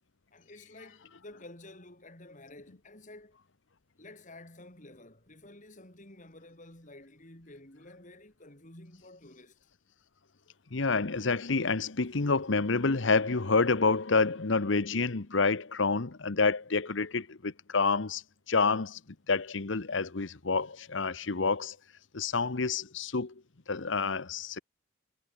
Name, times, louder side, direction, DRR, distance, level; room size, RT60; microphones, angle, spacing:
voice 1, 0.3-3.4 4.0-9.6, left 2 dB, 40° left, 4.5 m, -51 dB
voice 2, 10.7-19.0 19.3-21.8 22.1-23.3 23.7-24.6, left 4 dB, 65° left, 1.0 m, -28 dB
head